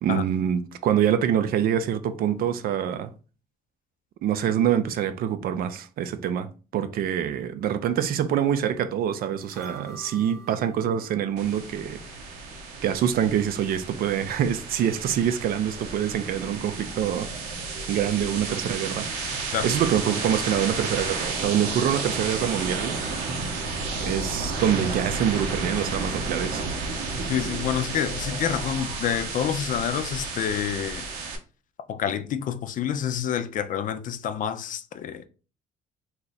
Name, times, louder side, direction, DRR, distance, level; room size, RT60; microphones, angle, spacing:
voice 1, 0.0-3.1 4.2-12.0 12.8-17.3 17.9-19.1 19.6-23.0 24.0-26.7, right 9 dB, 60° right, 0.4 m, -25 dB
sound 1, 9.4-12.5 12.9-13.0, right 2 dB, ahead, 1.2 m, -49 dB
sound 2, 11.4-31.4, right 3 dB, 90° right, 0.9 m, -32 dB
voice 2, 27.3-31.1 31.9-35.3, left 9 dB, 50° left, 0.4 m, -28 dB
2.8 x 2.4 x 4.0 m
cardioid pair, 110°, 17 cm